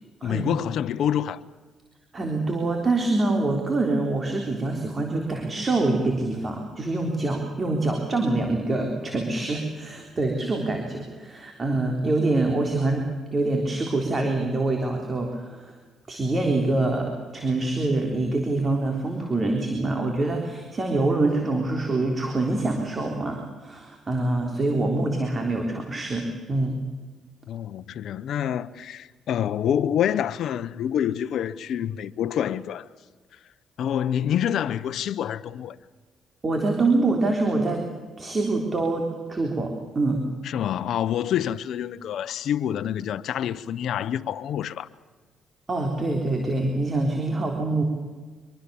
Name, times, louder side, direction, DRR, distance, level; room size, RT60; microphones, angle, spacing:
voice 1, 0.2-1.4 27.5-32.9 33.8-35.8 40.4-44.9, left 10 dB, 70° left, 0.9 m, -27 dB
voice 2, 2.1-13.0 13.3-15.7 16.1-26.8 36.4-37.8 38.2-40.2 45.7-47.8, right 2 dB, 30° right, 3.7 m, -25 dB
24.5 x 23.5 x 7.1 m
cardioid pair, 90°, 0 cm